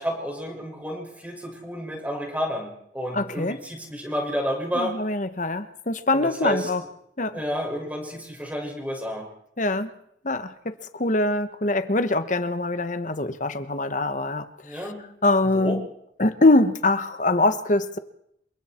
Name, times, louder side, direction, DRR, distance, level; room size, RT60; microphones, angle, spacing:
voice 1, 0.0-4.9 6.1-6.9 7.3-9.2 14.6-15.1 15.5-15.8, equal, 10° right, 0 dB, 6.1 m, -30 dB
voice 2, 3.1-3.6 4.8-6.8 7.2-7.4 9.6-9.9 10.2-14.4 15.2-15.8 16.2-18.0, left 2 dB, 40° left, 11 dB, 1.3 m, -23 dB
28.5 x 24.5 x 4.5 m, 0.75 s
head